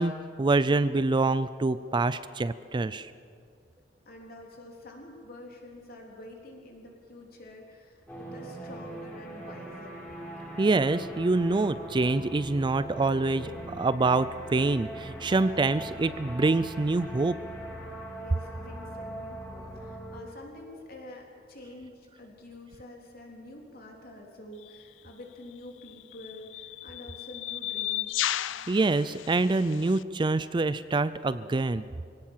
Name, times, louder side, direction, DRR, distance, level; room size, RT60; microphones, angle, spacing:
voice 1, 0.0-3.1 10.6-17.4 28.7-31.9, right 3 dB, 25° right, 15 dB, 0.4 m, -26 dB
voice 2, 4.1-10.0 18.2-28.3, left 1 dB, 55° left, 0 dB, 3.7 m, -47 dB
sound 1, 8.1-20.2, right 1 dB, 10° left, 4.1 m, -41 dB
sound 2, 24.6-24.8 25.8-30.0, left 13 dB, 85° left, 0.5 m, -34 dB
23.0 x 17.5 x 7.4 m, 2.3 s
head